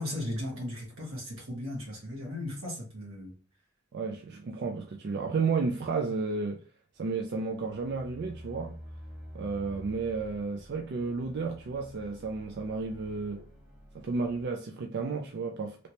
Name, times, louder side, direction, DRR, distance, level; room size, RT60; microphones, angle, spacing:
voice 1, 0.0-3.3, left 1 dB, 85° right, 1.5 m, -36 dB
voice 2, 3.9-6.6 7.0-8.8 9.3-13.4 13.9-15.9, right 4 dB, 55° right, 0.4 m, -32 dB
sound 1, 7.0-14.5, equal, 5° right, 0.7 m, -49 dB
3.2 x 2.8 x 2.9 m
head